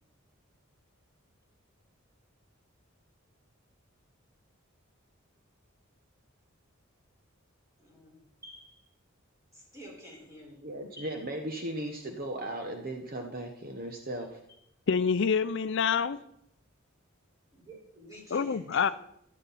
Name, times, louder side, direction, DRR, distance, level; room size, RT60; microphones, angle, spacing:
voice 1, 7.8-8.9 9.5-10.6 10.9-11.2 14.5-14.6 17.5-18.9, equal, 15° right, -3 dB, 4.8 m, -50 dB
voice 2, 10.6-14.4, right 1 dB, 45° right, 3 dB, 1.2 m, -37 dB
voice 3, 14.9-16.2 18.3-18.9, left 6 dB, 60° left, 13 dB, 0.5 m, -26 dB
13.5 x 11.0 x 4.2 m, 0.76 s
head